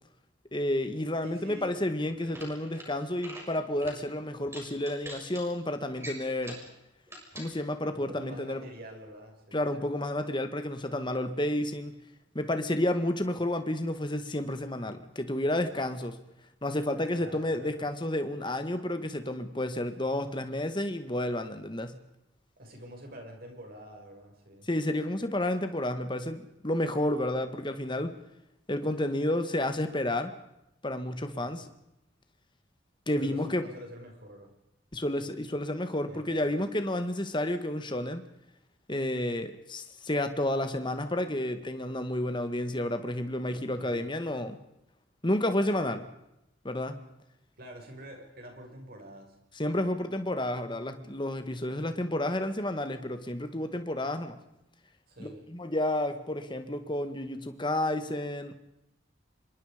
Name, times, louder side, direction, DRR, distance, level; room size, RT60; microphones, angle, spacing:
voice 1, 0.5-6.6 7.3-8.6 9.5-11.9 12.3-16.2 16.6-21.9 24.6-28.2 28.7-30.3 30.8-31.7 33.1-33.7 34.9-38.3 38.9-44.6 45.2-46.1 46.6-47.0 49.6-54.4 55.2-58.5, left 1 dB, 25° left, 8 dB, 1.9 m, -31 dB
voice 2, 1.2-1.9 7.9-9.7 17.2-17.8 22.6-24.7 31.4-31.7 33.2-34.5 35.2-35.5 36.0-36.6 43.8-44.1 47.6-49.4 55.1-55.5, equal, 50° right, 2 dB, 6.4 m, -47 dB
sound 1, 2.2-2.9 3.2-3.5 3.8-4.0 4.5-5.4 6.0-6.7 7.1-7.5, equal, 15° right, 6.1 m, -43 dB
26.5 x 23.5 x 5.3 m, 0.86 s
head